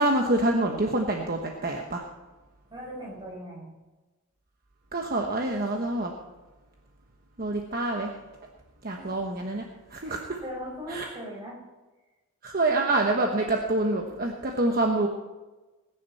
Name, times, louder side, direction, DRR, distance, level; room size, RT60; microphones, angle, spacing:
voice 1, 0.0-2.0 4.9-6.1 7.4-8.1 8.8-9.6 9.9-10.4 10.9-11.1 12.4-15.1, right 2 dB, 45° right, 2 dB, 1.1 m, -26 dB
voice 2, 2.7-3.8 8.9-9.2 10.0-11.6, equal, 20° right, -2 dB, 4.7 m, -39 dB
20.5 x 10.5 x 4.2 m, 1.2 s
head